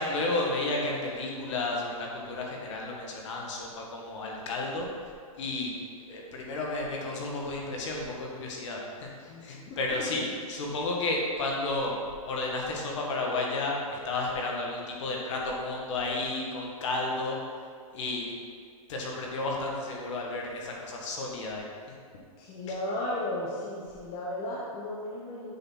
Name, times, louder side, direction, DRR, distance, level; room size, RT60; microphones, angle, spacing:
voice 1, 0.0-4.9 5.4-5.7 6.1-9.1 9.4-10.2 10.5-11.9 12.2-17.4 17.9-18.3 18.9-21.7, left 2 dB, 55° left, -1 dB, 1.7 m, -32 dB
voice 2, 9.2-10.3 22.4-25.5, left 1 dB, 30° left, -4 dB, 1.0 m, -35 dB
7.9 x 4.1 x 5.6 m, 2.1 s
hypercardioid pair, 140°, 18 cm